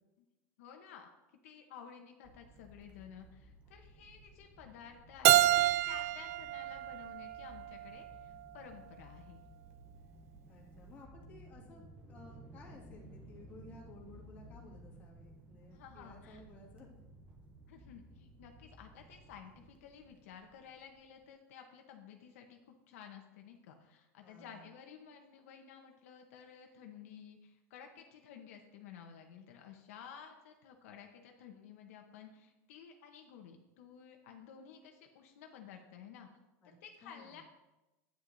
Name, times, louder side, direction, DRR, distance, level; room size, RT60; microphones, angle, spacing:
voice 1, 0.6-1.1 1.4-9.4 15.7-16.4 17.7-36.3 36.6-37.4, left 7 dB, 65° left, 3 dB, 1.0 m, -53 dB
sound 1, 2.2-21.2, right 1 dB, 15° right, 0.7 m, -57 dB
Keyboard (musical), 5.2-8.1, right 15 dB, 75° right, 0.3 m, -29 dB
voice 2, 10.5-11.8 12.1-16.9 24.2-24.7 36.6-36.7 37.0-37.4, left 2 dB, 20° left, -3 dB, 2.0 m, -56 dB
11.0 x 9.3 x 2.7 m, 1.0 s
supercardioid pair, 175°, 8 cm